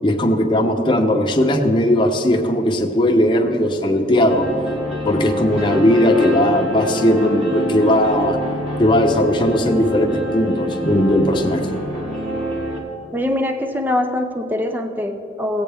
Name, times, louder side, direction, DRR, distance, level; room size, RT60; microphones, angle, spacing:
voice 1, 0.0-4.5 5.0-8.4 8.8-11.8, left 1 dB, 25° left, 3 dB, 0.8 m, -17 dB
sound 1, 4.3-12.8, equal, 35° right, 1.7 m, -26 dB
voice 2, 13.1-15.6, left 1 dB, 10° right, 7 dB, 0.5 m, -23 dB
17.0 x 8.3 x 3.5 m, 2.9 s
head